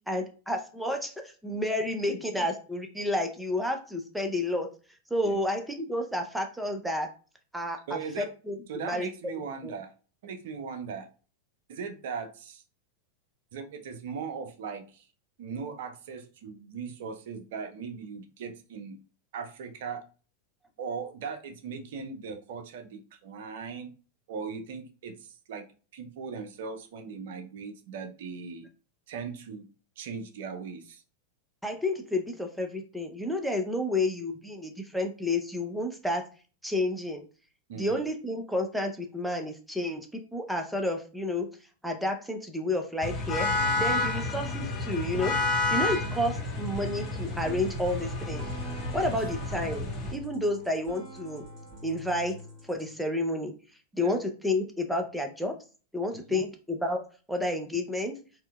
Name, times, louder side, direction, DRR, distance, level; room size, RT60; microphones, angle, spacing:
voice 1, 0.1-4.7 5.1-7.1 7.5-7.8 8.2-8.6 8.8-9.1 9.6-9.7 31.6-36.2 36.6-37.2 37.8-41.5 41.8-43.5 43.8-45.4 45.7-48.5 48.9-51.4 51.8-52.4 52.7-53.5 53.9-55.6 55.9-57.0 57.3-58.1, left 1 dB, ahead, 4 dB, 0.5 m, -30 dB
voice 2, 7.9-8.3 8.7-9.9 10.2-11.1 11.7-12.6 13.5-15.1 15.4-19.0 19.3-20.0 20.8-23.9 24.3-25.7 25.9-28.7 29.1-29.7 30.0-31.0 37.7-38.0 45.9-46.1 54.0-54.2 56.3-56.4, right 5 dB, 55° right, 7 dB, 0.5 m, -39 dB
sound 1, 43.0-50.1, left 3 dB, 30° left, 0.8 m, -30 dB
sound 2, 43.5-52.9, equal, 35° right, 1.5 m, -45 dB
4.3 x 2.1 x 2.2 m, 0.37 s
figure-of-eight pair, 90°, 0 cm